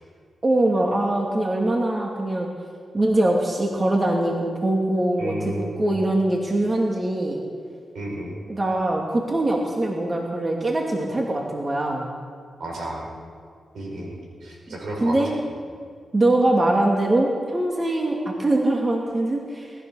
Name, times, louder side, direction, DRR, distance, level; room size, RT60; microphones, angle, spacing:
voice 1, 0.4-2.5 2.9-5.5 5.8-7.4 8.5-12.1 15.0-15.3 16.1-19.7, right 1 dB, 35° right, -1 dB, 2.6 m, -22 dB
voice 2, 5.2-5.9 7.9-8.4 12.6-13.1 13.7-15.4, right 1 dB, 80° right, -1 dB, 5.3 m, -32 dB
19.5 x 11.5 x 6.4 m, 2.2 s
cardioid pair, 50°, 0 cm